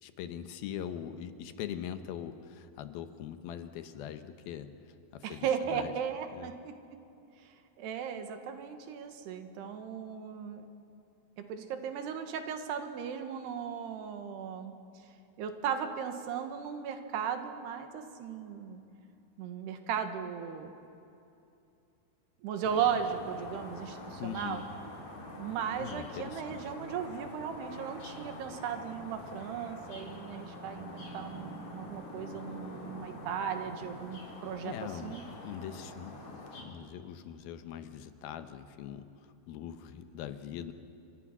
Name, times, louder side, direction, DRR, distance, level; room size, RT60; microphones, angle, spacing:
voice 1, 0.0-5.9 6.3-6.5 24.2-24.7 25.8-26.7 34.6-40.7, left 9 dB, 75° left, 9 dB, 2.6 m, -42 dB
voice 2, 5.2-6.7 7.8-10.6 11.4-14.7 15.4-18.8 19.4-20.7 22.4-24.6 25.4-34.7 35.0-35.2, right 7 dB, 85° right, 7 dB, 3.6 m, -36 dB
London Suburban Garden Atmosphere, 22.6-36.6, left 1 dB, 45° left, 5.0 m, -45 dB
28.5 x 25.0 x 6.0 m, 2.7 s
omnidirectional pair, 4.6 m